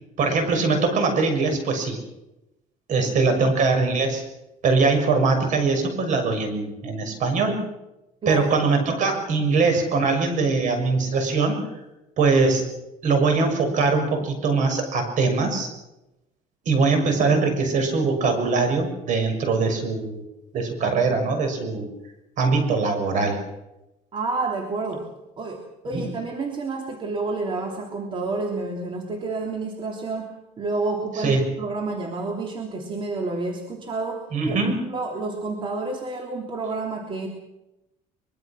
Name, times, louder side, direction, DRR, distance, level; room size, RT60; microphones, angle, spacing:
voice 1, 0.2-2.0 2.9-4.2 4.6-7.6 8.3-11.6 12.2-12.7 13.0-15.7 16.6-20.2 20.5-21.9 22.4-23.4 25.9-26.1 31.2-31.4 34.3-34.8, right 4 dB, 55° right, 6 dB, 6.3 m, -22 dB
voice 2, 24.1-25.1 25.4-37.3, right 3 dB, 35° right, 2 dB, 3.2 m, -29 dB
24.0 x 23.0 x 6.1 m, 0.95 s
cardioid pair, 120°, 15 cm